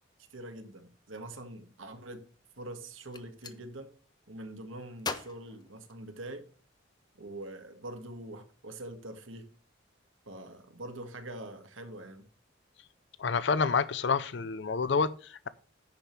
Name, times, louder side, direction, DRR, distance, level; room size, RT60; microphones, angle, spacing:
voice 1, 0.3-2.3 2.6-3.9 4.3-6.5 7.2-9.5 10.3-12.3, right 1 dB, 85° right, 1.8 m, -44 dB
Gunshot gunfire, 2.9-3.6 5.0-6.5, left 4 dB, 20° left, 0.7 m, -40 dB
voice 2, 13.2-15.5, left 5 dB, 60° left, 0.5 m, -28 dB
10.5 x 5.2 x 5.8 m
head